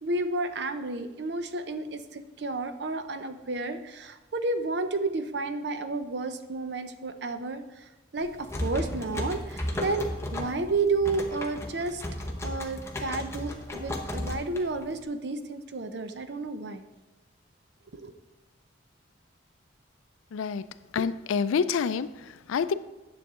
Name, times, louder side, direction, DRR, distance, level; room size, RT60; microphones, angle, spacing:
voice 1, 0.0-10.1 10.3-12.0 12.4-16.8 17.9-18.1, right 3 dB, 55° right, 9 dB, 0.6 m, -31 dB
sound 1, 8.2-15.0, left 1 dB, 15° left, 0.7 m, -35 dB
voice 2, 20.3-20.6 20.9-22.7, left 6 dB, 90° left, 15 dB, 0.4 m, -27 dB
9.6 x 7.0 x 3.7 m, 1.1 s
head